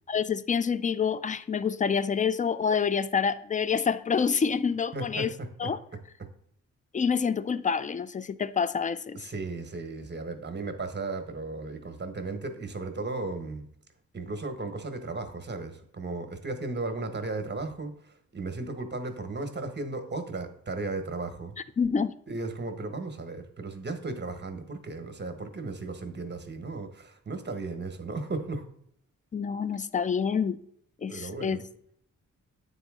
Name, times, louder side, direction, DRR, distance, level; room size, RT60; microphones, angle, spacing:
voice 1, 0.1-5.3 5.6-5.8 6.9-9.2 21.8-22.1 29.3-30.6 31.0-31.6, left 6 dB, 25° left, 0.4 m, -27 dB
voice 2, 4.9-5.7 6.2-6.3 9.1-13.7 14.1-21.5 22.3-28.7 31.1-31.6, right 3 dB, 35° right, 1.1 m, -35 dB
8.8 x 4.1 x 3.6 m
cardioid pair, 75°, 32 cm